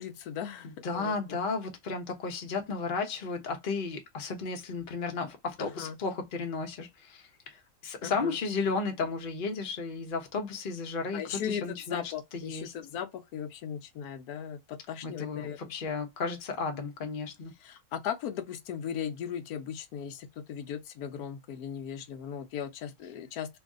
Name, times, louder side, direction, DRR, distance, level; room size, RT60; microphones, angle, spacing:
voice 1, 0.0-1.2 5.6-6.0 8.0-8.4 11.1-15.7 17.6-23.6, left 8 dB, 85° left, 1.1 m, -38 dB
voice 2, 0.8-12.7 15.0-17.5, left 4 dB, 40° left, 0.9 m, -34 dB
3.1 x 2.6 x 3.6 m
omnidirectional pair, 1.6 m